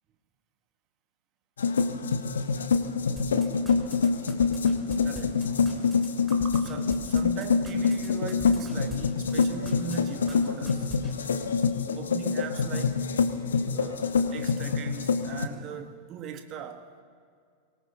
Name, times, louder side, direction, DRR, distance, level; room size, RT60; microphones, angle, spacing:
sound 1, 1.6-15.5, left 5 dB, 70° left, 0.9 m, -26 dB
sound 2, 3.2-9.0 9.3-10.0 10.3-10.4 10.6-11.1, right 1 dB, 10° right, 2.8 m, -42 dB
voice 1, 5.0-5.5 6.3-10.9 11.9-13.0 13.7-16.9, right 7 dB, 40° right, 1.2 m, -39 dB
24.0 x 17.5 x 2.8 m
figure-of-eight pair, 90°, 0 cm